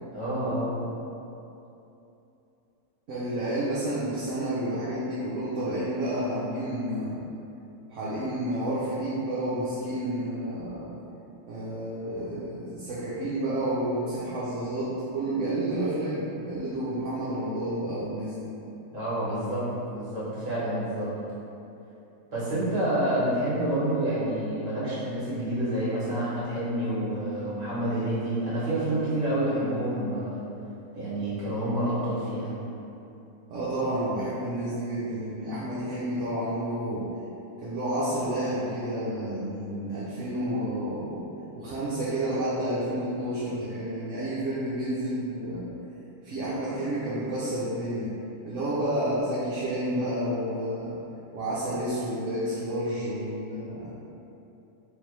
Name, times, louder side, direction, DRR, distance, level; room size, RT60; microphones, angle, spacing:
voice 1, 0.1-0.8 18.9-19.6 19.9-21.1 22.3-30.4 30.9-32.5, right 1 dB, 40° right, -10 dB, 1.6 m, -28 dB
voice 2, 3.1-7.2 7.9-10.9 11.5-18.5 33.5-37.0 37.6-41.2 41.6-45.6 46.2-48.1 48.4-51.0 51.3-53.9, right 1 dB, 60° right, -9 dB, 1.0 m, -30 dB
3.9 x 3.3 x 3.2 m, 2.9 s
omnidirectional pair, 1.6 m